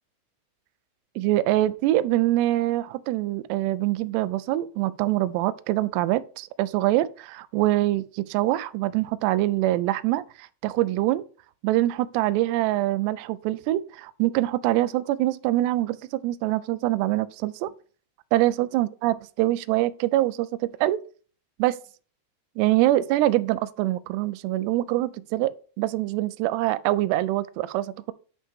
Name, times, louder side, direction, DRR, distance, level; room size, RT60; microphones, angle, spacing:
voice 1, 1.2-11.2 11.6-17.7 18.3-21.0 21.6-21.8 22.6-28.1, right 15 dB, 85° right, 2.5 m, -24 dB
9.6 x 5.6 x 3.6 m
omnidirectional pair, 5.2 m